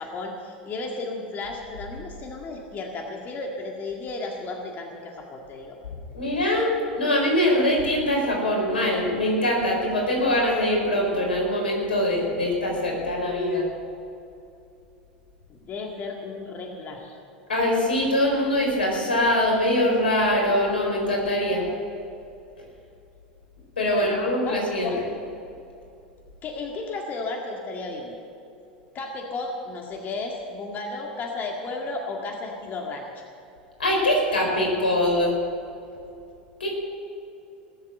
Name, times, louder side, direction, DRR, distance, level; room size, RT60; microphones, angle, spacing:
voice 1, 0.0-5.8 15.5-17.2 23.9-24.6 24.8-25.1 26.4-28.2 28.9-33.2, left 3 dB, 35° left, 1 dB, 2.0 m, -34 dB
voice 2, 6.1-13.7 17.5-21.7 23.8-24.9 33.8-35.4 36.6-36.7, left 1 dB, 90° left, -1 dB, 4.3 m, -23 dB
19.0 x 7.5 x 7.9 m, 2.7 s
hypercardioid pair, 90°, 5 cm